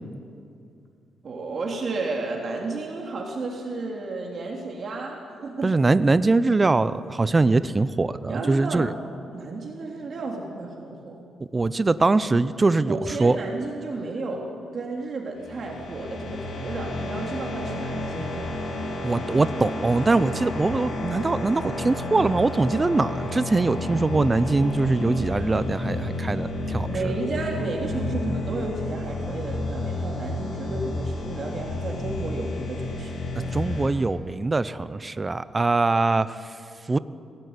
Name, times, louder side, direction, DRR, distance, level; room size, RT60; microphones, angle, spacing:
voice 1, 1.2-5.8 8.3-8.9 9.3-11.2 12.9-14.5 14.7-18.4 26.8-33.2, right 3 dB, 45° right, 0 dB, 3.1 m, -32 dB
voice 2, 5.6-8.9 11.5-13.4 19.0-26.9 33.4-36.3 36.9-37.0, right 3 dB, 20° right, 14 dB, 0.7 m, -22 dB
sound 1, 15.4-33.9, left 2 dB, 80° left, 6.3 m, -31 dB
23.5 x 17.0 x 9.6 m, 2.5 s
cardioid pair, 125°, 0 cm